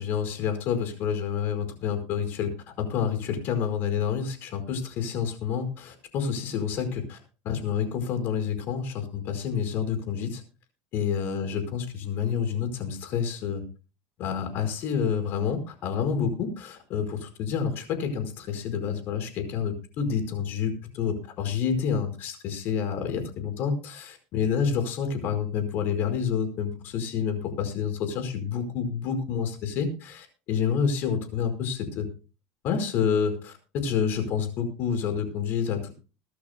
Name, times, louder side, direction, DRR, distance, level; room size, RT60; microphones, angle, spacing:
voice 1, 0.0-7.2 7.4-10.4 10.9-13.6 14.2-32.1 32.6-35.9, left 7 dB, 55° left, 7 dB, 4.8 m, -28 dB
23.0 x 12.0 x 2.3 m, 0.34 s
supercardioid pair, 110°, 4 cm